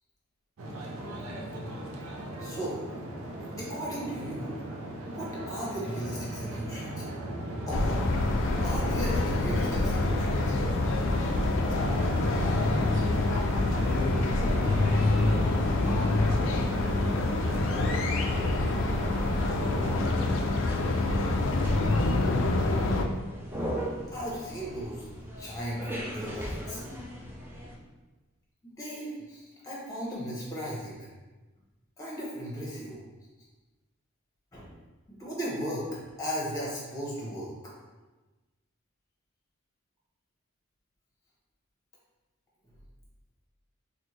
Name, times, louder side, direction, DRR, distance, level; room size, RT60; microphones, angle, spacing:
sound 1, 0.6-20.5, right 1 dB, 75° right, 0.5 m, -38 dB
voice 1, 2.4-2.9 3.6-4.5 5.0-7.0 7.7-8.0 8.6-10.6 24.1-26.8 28.6-31.0 32.0-33.0 34.5-34.7 35.1-37.7, equal, 15° left, -5 dB, 0.9 m, -36 dB
sound 2, 7.7-23.0, left 2 dB, 60° left, 0.4 m, -26 dB
voice 2, 12.6-13.0 13.7-16.0 16.7-19.1 19.6-20.4, left 1 dB, 60° right, -5 dB, 1.0 m, -38 dB
sound 3, 14.4-27.8, equal, 10° right, 0.4 m, -41 dB
4.2 x 2.2 x 3.1 m, 1.2 s
head